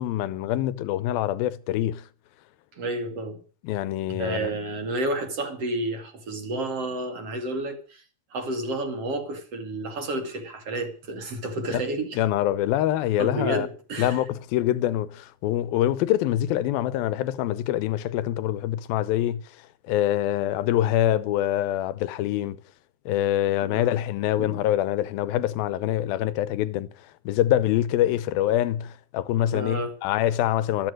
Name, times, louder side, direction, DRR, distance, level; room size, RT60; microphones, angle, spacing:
voice 1, 0.0-2.0 3.6-4.5 11.7-11.8 12.2-13.7 14.0-19.4 19.9-22.6 23.1-26.9 27.3-30.9, left 12 dB, 75° left, 2.6 m, -25 dB
voice 2, 2.7-3.4 4.1-8.0 8.3-12.2 13.2-14.2 23.6-23.9 24.4-24.7 29.5-30.0, right 2 dB, 40° right, 3.2 m, -31 dB
14.0 x 13.5 x 6.3 m
omnidirectional pair, 4.4 m